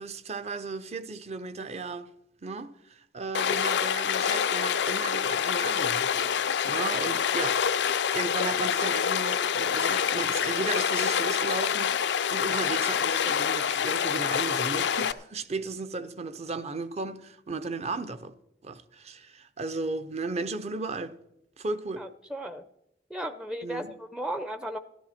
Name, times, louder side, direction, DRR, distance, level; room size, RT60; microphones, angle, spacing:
voice 1, 0.0-2.1 2.4-6.3 6.6-7.6 7.9-18.3 18.6-21.1 21.6-22.0 23.6-23.9, right 3 dB, 40° right, 0.7 m, -35 dB
Stream, 3.4-15.1, left 8 dB, 75° left, 0.5 m, -26 dB
voice 2, 22.0-22.6 23.1-24.8, right 1 dB, 5° right, 0.5 m, -35 dB
13.5 x 12.5 x 4.3 m
head